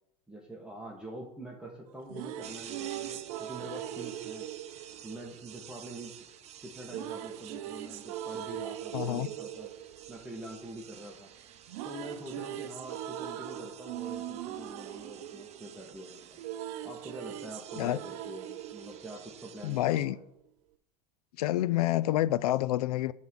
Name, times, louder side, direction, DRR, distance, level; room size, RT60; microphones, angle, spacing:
voice 1, 0.3-4.5 5.0-6.2 6.6-9.7 10.1-11.3 11.8-16.4 16.8-20.3, right 1 dB, 5° right, 1.4 m, -45 dB
sound 1, 1.9-6.0 6.9-11.1 11.4-19.9, right 12 dB, 65° right, 0.6 m, -41 dB
sound 2, 2.4-20.1, right 9 dB, 35° right, 0.8 m, -52 dB
voice 2, 8.9-9.3 17.8-18.0 19.6-20.2 21.4-23.1, left 14 dB, 80° left, 0.4 m, -28 dB
8.1 x 3.7 x 6.2 m
hypercardioid pair, 100°, 19 cm